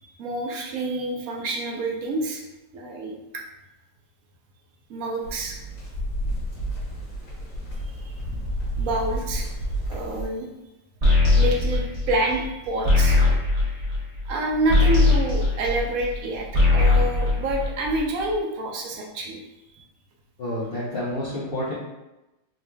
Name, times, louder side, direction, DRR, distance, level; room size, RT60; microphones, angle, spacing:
voice 1, 0.0-2.4 2.7-3.4 4.9-5.6 7.9-8.1 8.8-9.5 9.9-10.5 11.4-13.2 14.3-19.4 19.8-19.9, right 1 dB, 75° right, 0 dB, 0.8 m, -28 dB
sound 1, 5.2-10.2, right 1 dB, 50° left, 1.4 m, -31 dB
sound 2, 11.0-16.2 16.5-18.2, left 2 dB, 30° right, 0.7 m, -20 dB
voice 2, 20.4-21.7, left 1 dB, 75° left, -9 dB, 0.5 m, -29 dB
4.0 x 3.1 x 2.2 m, 0.98 s
omnidirectional pair, 2.1 m